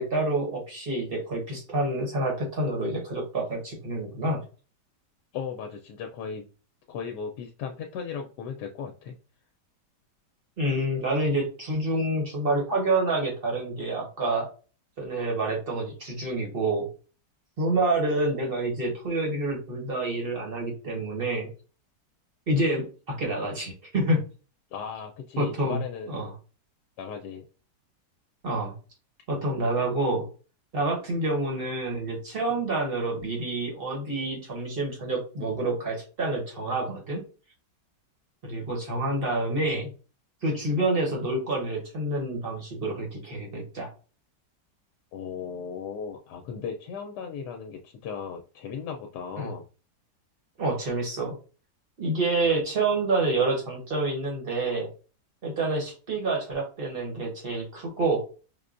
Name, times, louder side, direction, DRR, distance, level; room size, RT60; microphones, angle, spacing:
voice 1, 0.0-4.4 10.6-14.5 15.0-16.9 17.6-21.5 22.5-24.2 25.4-25.8 26.1-26.3 28.4-28.7 29.3-30.3 30.7-37.2 38.4-39.9 40.4-43.9 49.4-49.5 50.6-51.3 52.0-54.9 55.4-58.2, right 2 dB, 40° right, 0 dB, 1.1 m, -28 dB
voice 2, 5.3-6.5 6.9-9.2 24.7-26.1 27.0-27.4 45.1-49.6, left 6 dB, 75° left, 3 dB, 1.1 m, -36 dB
5.2 x 2.2 x 2.4 m, 0.36 s
omnidirectional pair, 1.9 m